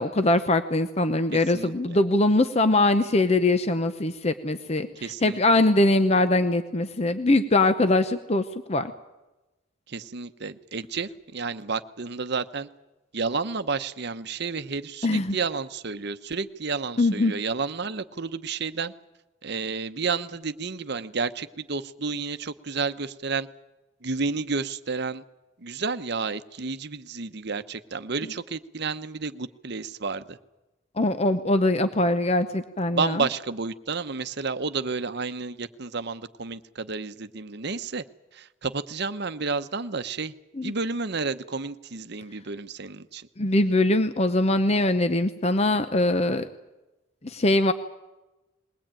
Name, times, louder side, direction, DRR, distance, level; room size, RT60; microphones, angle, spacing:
voice 1, 0.0-4.9 5.2-8.9 15.0-15.4 17.0-17.3 31.0-33.3 40.6-40.7 43.4-46.5 47.2-47.7, left 2 dB, 30° left, 10 dB, 0.8 m, -22 dB
voice 2, 1.3-2.0 5.0-5.4 9.9-12.7 13.1-18.9 19.4-23.5 24.0-25.2 25.6-30.4 32.9-38.0 38.3-40.3 40.6-43.3, right 4 dB, 55° right, 11 dB, 0.9 m, -31 dB
21.5 x 19.0 x 9.0 m, 1.0 s
head